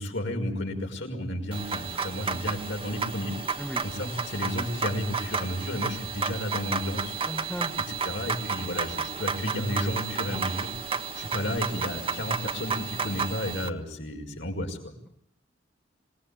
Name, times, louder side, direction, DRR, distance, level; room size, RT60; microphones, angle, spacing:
voice 1, 0.0-3.3 3.8-7.2 7.7-10.7 11.1-14.9, left 1 dB, 65° left, 2 dB, 5.6 m, -32 dB
sound 1, 1.5-13.7, right 5 dB, 30° right, 1.4 m, -32 dB
voice 2, 7.2-7.8, equal, 5° left, 5 dB, 1.3 m, -36 dB
26.5 x 20.0 x 8.8 m, 0.73 s
head